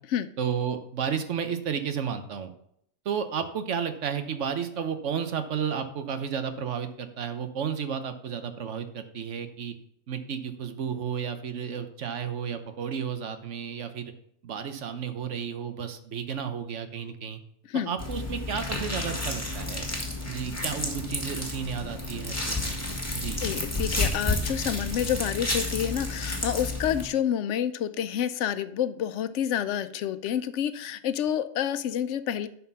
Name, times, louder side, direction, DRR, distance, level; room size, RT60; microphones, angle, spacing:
voice 1, 0.4-2.5 3.0-9.7 10.1-14.1 14.4-17.4 17.9-19.9 20.3-22.8 23.1-23.4, right 7 dB, 90° right, 9 dB, 1.2 m, -32 dB
sound 1, 18.0-27.1, left 2 dB, 15° left, 1.8 m, -31 dB
voice 2, 23.0-32.5, left 9 dB, 80° left, 13 dB, 0.9 m, -29 dB
11.0 x 4.3 x 5.5 m, 0.71 s
omnidirectional pair, 1.2 m